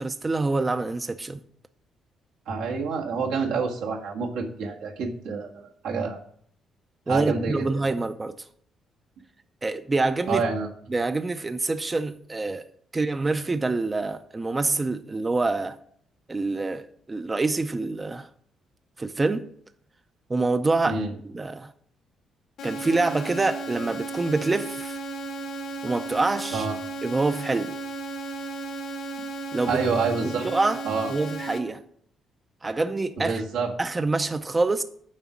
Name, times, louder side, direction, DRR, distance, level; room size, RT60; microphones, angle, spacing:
voice 1, 0.0-1.4 7.1-8.3 9.6-10.4 10.9-12.6 12.9-15.8 16.3-18.3 19.0-19.5 20.3-21.7 22.6-25.0 25.8-26.7 27.0-27.7 29.5-29.8 30.2-30.8 31.1-31.8 32.6-33.4 33.8-34.8, right 3 dB, 25° right, 0.5 m, -26 dB
voice 2, 2.5-6.2 7.1-7.7 10.3-10.7 20.8-21.1 26.5-26.7 29.7-30.5 30.8-31.1 33.2-33.7, right 4 dB, 90° right, 1.6 m, -27 dB
sound 1, 22.6-31.6, right 2 dB, 75° left, 1.4 m, -35 dB
7.4 x 5.0 x 7.2 m
cardioid pair, 90°, 0 cm